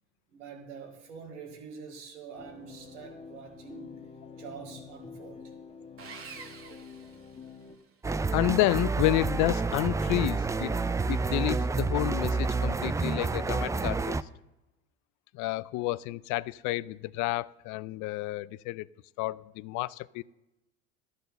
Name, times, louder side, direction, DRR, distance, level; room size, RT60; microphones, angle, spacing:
voice 1, 0.3-3.9 4.4-5.5, right 6 dB, 85° right, 2 dB, 2.7 m, -45 dB
sound 1, 2.4-7.8, left 5 dB, 15° left, 1.5 m, -47 dB
Sawing, 6.0-7.9, right 5 dB, 40° right, 1.7 m, -47 dB
sound 2, 8.0-14.2, right 3 dB, 10° right, 0.4 m, -29 dB
voice 2, 8.3-14.2 15.3-18.9 19.2-20.2, left 17 dB, 55° left, 21 dB, 0.5 m, -30 dB
12.5 x 8.1 x 6.6 m, 0.97 s
hypercardioid pair, 75°, 35 cm